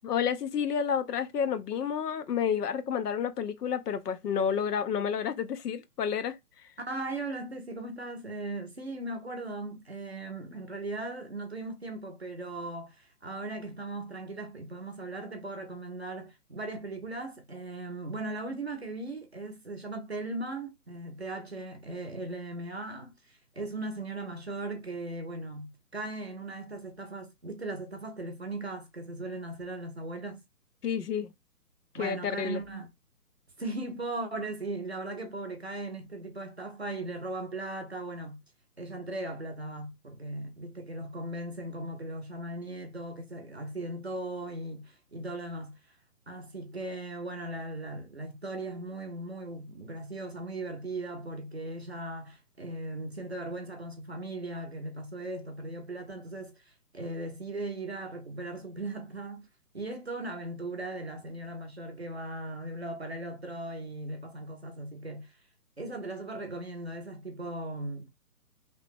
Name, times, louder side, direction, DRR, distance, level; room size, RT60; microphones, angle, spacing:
voice 1, 0.0-6.4 30.8-31.3 31.9-32.6, left 7 dB, 80° left, 0.7 m, -30 dB
voice 2, 6.8-30.4 31.9-32.9 33.6-38.4 38.8-45.8 46.3-59.5 59.7-65.3 65.8-68.1, right 2 dB, 45° right, 0.5 m, -38 dB
2.9 x 2.1 x 3.2 m
hypercardioid pair, 180°, 47 cm